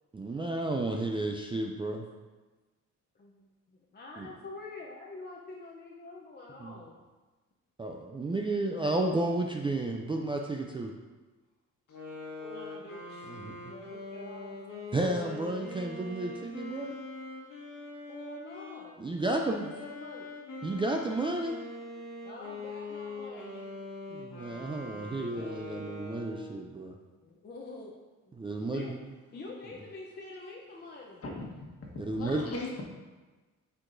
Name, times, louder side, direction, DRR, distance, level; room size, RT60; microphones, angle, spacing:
voice 1, 0.1-2.0 4.2-4.3 6.6-6.8 7.8-10.9 13.3-13.6 14.9-17.0 19.0-19.7 20.6-21.6 24.1-27.0 28.3-28.8 32.1-32.4, right 2 dB, 15° right, 1 dB, 0.3 m, -32 dB
voice 2, 3.2-7.0 11.9-12.0 12.4-13.3 13.6-14.6 18.1-20.3 22.2-23.7 27.2-27.9 28.3-28.4 28.7-28.9 29.3-31.2, left 2 dB, 30° left, -3 dB, 0.6 m, -46 dB
sound 1, 11.9-18.9 19.5-26.7, left 3 dB, 90° left, 1.6 m, -43 dB
voice 3, 31.2-32.8, left 2 dB, 50° left, -1 dB, 1.3 m, -39 dB
8.3 x 4.6 x 2.6 m, 1.3 s
cardioid pair, 130°, 32 cm